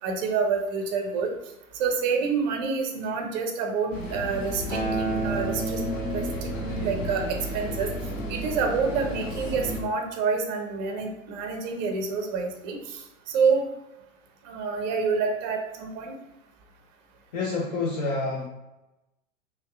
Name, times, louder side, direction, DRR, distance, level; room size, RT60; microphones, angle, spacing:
voice 1, 0.0-1.3 1.7-5.8 6.1-7.9 8.3-13.7 14.4-16.2, right 5 dB, 35° right, 3 dB, 0.6 m, -28 dB
sound 1, 3.9-9.8, equal, 70° left, 0.8 m, -33 dB
Acoustic guitar, 4.7-9.0 9.8-9.9, right 2 dB, 10° left, 1.2 m, -34 dB
voice 2, 17.3-18.5, left 3 dB, 30° left, -2 dB, 0.5 m, -28 dB
5.1 x 2.2 x 2.3 m, 0.97 s
figure-of-eight pair, 100°, 40 cm